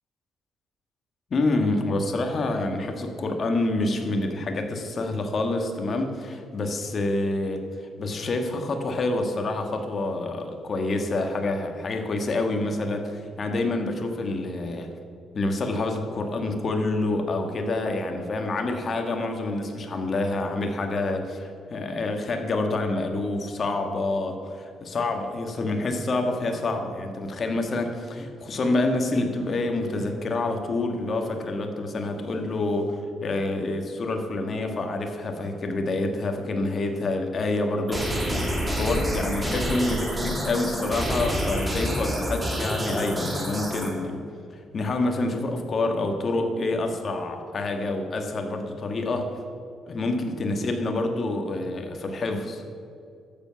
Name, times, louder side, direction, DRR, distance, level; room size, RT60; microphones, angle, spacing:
voice 1, 1.3-7.6 8.0-14.9 15.3-38.1 38.4-44.2 44.7-49.3 49.8-52.6, left 2 dB, 45° left, 4 dB, 1.7 m, -27 dB
sound 1, 37.9-43.9, equal, 15° right, 2.7 m, -28 dB
13.0 x 7.6 x 5.9 m, 2.4 s
cardioid pair, 90°, 0 cm